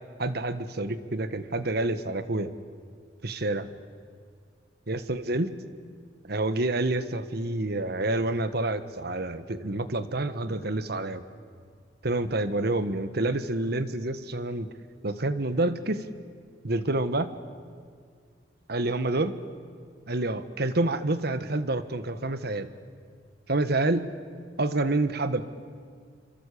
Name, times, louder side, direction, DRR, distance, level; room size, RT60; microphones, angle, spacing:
voice 1, 0.2-2.5 3.2-3.7 4.9-5.6 6.3-11.2 12.0-14.7 15.0-16.0 16.6-17.3 18.7-19.4 20.1-22.7 23.5-24.1 24.6-25.4, right 2 dB, 60° right, 11 dB, 1.4 m, -28 dB
27.5 x 25.5 x 8.5 m, 2.1 s
head